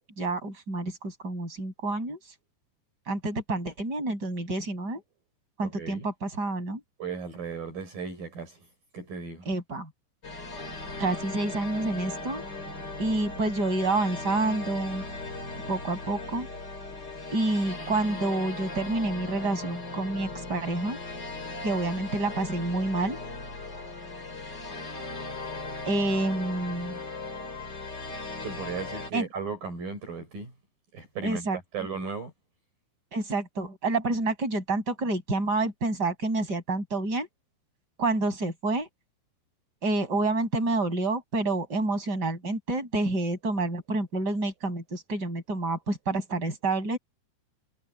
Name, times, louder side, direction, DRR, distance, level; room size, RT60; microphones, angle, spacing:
voice 1, 0.2-2.2 3.1-5.0 5.6-6.8 9.5-9.9 11.0-12.4 13.0-15.0 15.7-16.5 17.3-21.0 21.6-23.2 25.9-27.0 29.1-29.3 31.2-31.6 33.1-37.3 38.0-38.9 39.8-47.0, right 2 dB, 20° right, 7.7 m, -28 dB
voice 2, 5.6-6.1 7.0-8.7 8.9-9.5 28.4-30.5 30.9-31.5 31.7-32.3, right 5 dB, 55° right, 6.7 m, -36 dB
sound 1, 10.2-29.1, left 2 dB, 25° left, 5.0 m, -38 dB
omnidirectional pair, 5.1 m